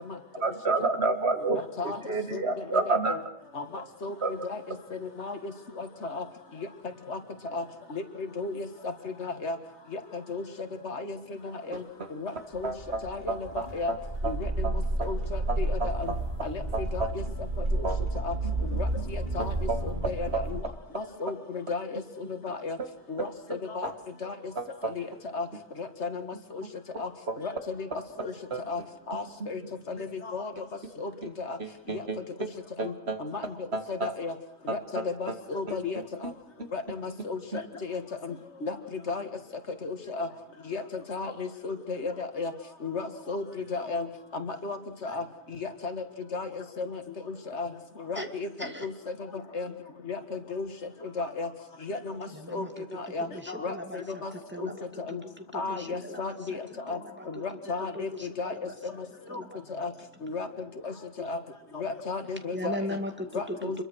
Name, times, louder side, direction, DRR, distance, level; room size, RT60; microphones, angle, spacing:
voice 1, 0.4-1.6 2.1-3.1 4.2-4.3 12.6-13.0 13.3-14.0 14.2-14.3 14.6-14.7 15.0-15.1 15.5-16.2 16.7-17.1 17.8-18.0 19.4-19.8 20.3-20.4 24.6-24.9 27.3-27.4 28.5-28.6 31.9-32.2 32.8-33.2 33.7-34.1 34.7-34.8, right 3 dB, 70° right, 8 dB, 2.1 m, -29 dB
voice 2, 1.5-2.0 2.3-2.4 2.7-3.2 3.6-3.7 4.0-4.1 4.4-4.6 5.0-5.4 5.8-6.2 7.1-7.2 7.5-7.6 7.9-8.7 9.0-9.6 9.9-10.0 10.3-10.4 10.8-11.2 11.7-11.8 12.1-12.7 13.0-13.9 14.3-14.5 15.0-16.1 16.4-16.6 16.9-17.2 17.8-17.9 18.2-18.3 18.8-19.5 20.1-20.6 21.0-22.0 22.3-22.8 23.1-23.3 23.7-23.9 24.2-24.3 25.0-25.1 25.3-25.5 25.8-26.2 26.5-26.6 27.0-27.1 27.4-27.9 28.2-28.3 28.7-28.8 29.1-29.6 29.9-30.5 31.0-31.1 31.4-31.6 31.9-32.0 32.8-32.9 33.2-33.4 33.9-34.3 34.7-36.0 36.7-38.3 38.6-38.8 39.1-39.3 39.8-40.3 40.7-40.8 41.1-42.5 42.8-43.4 43.7-44.1 44.3-44.8 45.0-45.2 45.6-46.0 46.3-46.5 46.8-47.0 47.5-47.7 48.1-48.9 49.5-49.7 50.1-50.7 51.2-51.5 51.8-52.6 52.9-54.3 54.6-54.7 55.1-55.2 55.5-56.6 56.9-57.0 57.3-58.1 58.4-58.5 58.8-58.9 59.3-59.4 59.7-59.9 60.2-60.5 60.8-61.4 61.7-62.9 63.3-63.8, left 4 dB, 85° left, 8 dB, 2.2 m, -34 dB
sound 1, 12.6-20.6, right 2 dB, 45° right, 4.2 m, -31 dB
voice 3, 52.3-56.6 56.9-57.4 57.9-58.7 59.3-59.6 62.5-63.8, equal, 10° right, 5 dB, 2.3 m, -39 dB
26.5 x 22.0 x 6.3 m, 0.70 s
omnidirectional pair, 1.1 m